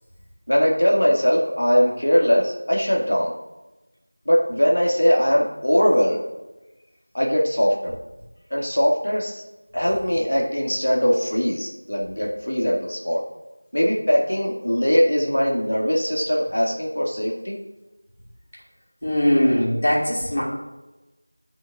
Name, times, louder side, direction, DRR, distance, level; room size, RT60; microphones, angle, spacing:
voice 1, 0.5-3.3 4.3-6.3 7.1-7.9 8.5-9.4 9.7-13.2 13.7-17.5, equal, 80° left, -3 dB, 1.9 m, -21 dB
voice 2, 19.0-20.4, equal, 35° left, -6 dB, 2.3 m, -20 dB
11.5 x 6.0 x 2.4 m, 1.0 s
figure-of-eight pair, 180°, 0 cm